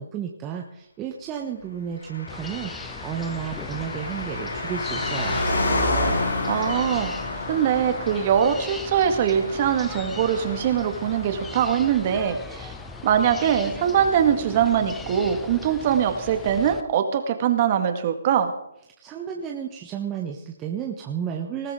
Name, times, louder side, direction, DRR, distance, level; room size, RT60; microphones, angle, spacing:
voice 1, 0.0-5.4 19.0-21.7, right 8 dB, 15° right, 1 dB, 1.2 m, -32 dB
Car passing by, 2.0-13.9 14.1-14.2, left 2 dB, 80° left, 7.0 m, -30 dB
sound 1, 2.3-16.8, left 4 dB, 5° left, 0.8 m, -39 dB
voice 2, 6.5-7.1 7.5-12.7 13.0-18.5, right 8 dB, 35° right, 7 dB, 1.9 m, -22 dB
19.5 x 14.5 x 3.9 m, 0.81 s
hypercardioid pair, 155°, 0 cm